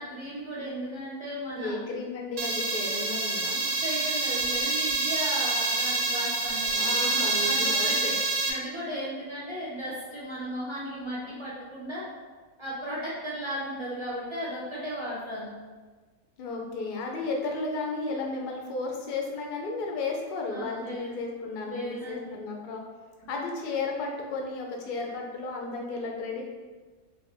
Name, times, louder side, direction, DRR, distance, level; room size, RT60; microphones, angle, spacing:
voice 1, 0.0-1.9 3.8-8.2 8.4-12.1 12.6-15.5 20.5-21.1 21.6-22.3 23.2-23.3, equal, 35° right, -7 dB, 0.5 m, -36 dB
voice 2, 1.6-3.6 6.8-8.1 16.4-22.8 23.3-26.4, left 3 dB, 60° left, 0 dB, 0.5 m, -33 dB
sound 1, 2.4-8.5, right 3 dB, 65° right, 0.7 m, -27 dB
2.9 x 2.7 x 3.3 m, 1.4 s
omnidirectional pair, 1.4 m